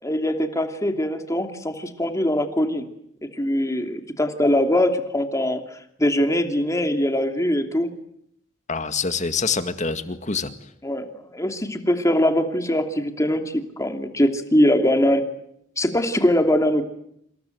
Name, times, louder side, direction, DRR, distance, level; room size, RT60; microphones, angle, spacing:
voice 1, 0.0-2.8 3.4-5.6 6.0-7.9 10.8-15.2 15.8-16.8, left 1 dB, 15° left, 6 dB, 2.8 m, -22 dB
voice 2, 8.7-10.5, left 5 dB, 40° left, 10 dB, 2.0 m, -25 dB
27.0 x 27.0 x 8.0 m, 0.74 s
head